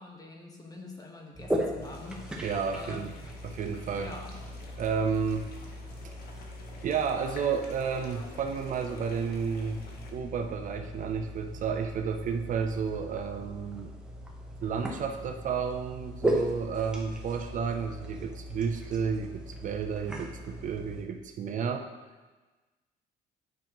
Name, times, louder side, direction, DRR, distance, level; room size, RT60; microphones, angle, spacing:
voice 1, 0.0-2.2 2.7-3.1 4.0-4.3, left 2 dB, 20° left, 1 dB, 1.2 m, -44 dB
sound 1, 1.3-21.0, equal, 5° right, 1.0 m, -38 dB
sound 2, 1.8-10.1, left 3 dB, 65° left, 1.2 m, -50 dB
voice 2, 2.4-3.1 3.4-4.1 4.8-5.5 6.0-6.1 6.8-9.8 10.1-13.9 14.6-21.9, right 6 dB, 50° right, 6 dB, 0.5 m, -31 dB
9.5 x 5.8 x 3.0 m, 1.3 s
cardioid pair, 110°, 17 cm